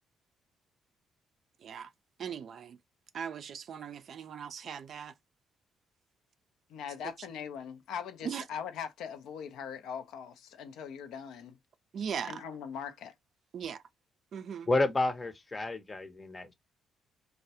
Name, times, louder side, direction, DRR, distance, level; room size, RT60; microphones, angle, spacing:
voice 1, 2.2-2.8 3.1-5.1 8.2-8.4 11.9-12.4 13.5-13.8 14.3-14.7, right 7 dB, 60° right, 0.3 m, -39 dB
voice 2, 6.7-11.6 12.2-13.1, left 7 dB, 75° left, 0.4 m, -41 dB
voice 3, 14.7-16.5, left 2 dB, 30° left, 0.6 m, -30 dB
2.2 x 2.0 x 2.7 m
hypercardioid pair, 55°, 0 cm